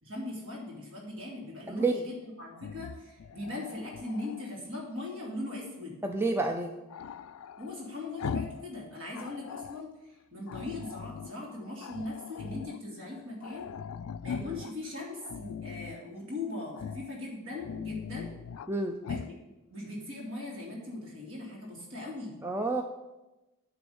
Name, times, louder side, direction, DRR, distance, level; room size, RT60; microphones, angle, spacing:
voice 1, 0.0-6.0 7.6-13.7 14.2-18.3 19.0-19.2 19.7-22.4, left 2 dB, 65° right, -3 dB, 2.6 m, -40 dB
voice 2, 1.7-2.0 6.0-6.7 14.4-14.6 18.7-19.0 22.4-22.8, right 3 dB, 10° right, 4 dB, 0.3 m, -29 dB
Growling, 2.5-4.5 6.9-8.7 9.0-9.9 10.5-11.4 11.8-12.8 13.1-13.2 13.4-14.7 15.2-16.0 16.7-17.1 17.5-18.7 19.0-19.3, left 7 dB, 80° left, 0.3 m, -40 dB
9.6 x 3.5 x 7.0 m, 1.0 s
head